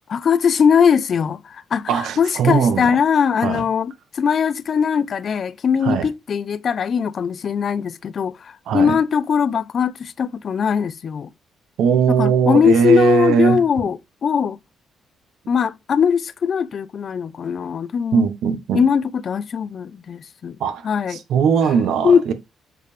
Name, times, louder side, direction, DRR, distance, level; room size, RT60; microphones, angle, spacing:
voice 1, 0.1-11.3 12.1-14.6 15.5-18.3 18.7-20.6 20.8-21.2 22.0-22.3, left 7 dB, 50° left, 0.5 m, -20 dB
voice 2, 1.9-2.9 3.4-3.6 5.8-6.1 8.7-9.0 11.8-13.6 18.1-18.8 20.6-22.3, right 7 dB, 75° right, 1.1 m, -19 dB
8.1 x 4.8 x 3.3 m
cardioid pair, 90°, 0 cm